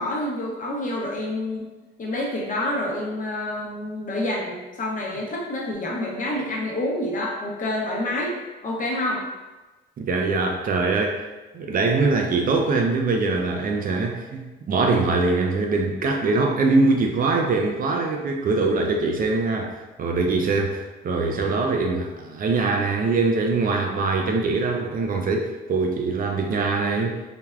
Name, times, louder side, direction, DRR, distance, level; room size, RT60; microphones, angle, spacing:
voice 1, 0.0-1.7 2.0-8.3 8.6-9.2, left 1 dB, 40° left, -2 dB, 0.7 m, -28 dB
voice 2, 10.0-11.3 11.5-19.7 20.0-27.2, right 3 dB, 45° right, 3 dB, 0.4 m, -23 dB
3.3 x 2.1 x 2.3 m, 1.1 s
cardioid pair, 90°, 20 cm